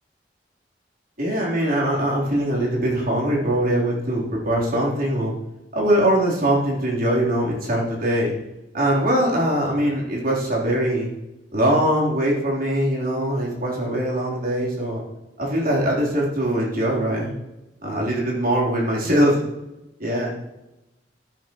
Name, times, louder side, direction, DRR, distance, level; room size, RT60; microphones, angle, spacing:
voice 1, 1.2-5.3 5.7-8.3 8.7-11.1 11.5-15.0 15.4-17.3 17.8-19.3 20.0-20.3, right 1 dB, 55° right, -3 dB, 3.7 m, -22 dB
14.0 x 9.5 x 3.1 m, 0.96 s
head